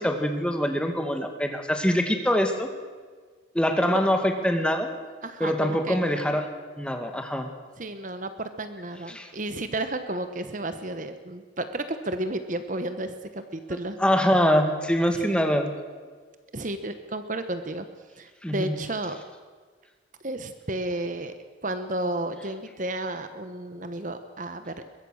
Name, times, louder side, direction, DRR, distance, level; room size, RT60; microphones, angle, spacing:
voice 1, 0.0-2.7 3.5-4.9 5.4-6.5 6.8-7.5 9.1-9.3 13.7-15.7 18.4-18.7, equal, 5° left, 5 dB, 2.0 m, -24 dB
voice 2, 5.2-6.4 7.8-14.0 15.1-15.5 16.5-17.9 18.2-19.2 20.2-21.3 21.6-24.7, right 1 dB, 40° right, 9 dB, 1.1 m, -32 dB
22.5 x 22.0 x 6.5 m, 1.5 s
head